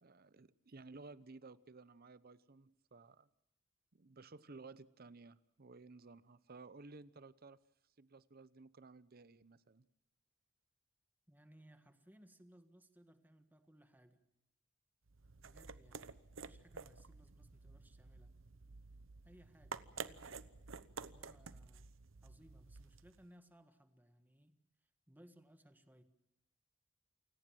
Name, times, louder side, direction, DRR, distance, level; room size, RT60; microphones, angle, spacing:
voice 1, 0.0-3.3 3.9-7.6 8.0-9.9, right 3 dB, 50° right, 17 dB, 0.8 m, -56 dB
voice 2, 11.3-14.2 15.4-18.3 19.2-20.5 21.1-21.9 22.2-24.6 25.1-26.0, equal, 10° right, 8 dB, 1.6 m, -64 dB
sound 1, 15.1-23.3, right 5 dB, 85° right, 0.9 m, -51 dB
28.5 x 17.5 x 7.6 m, 0.88 s
head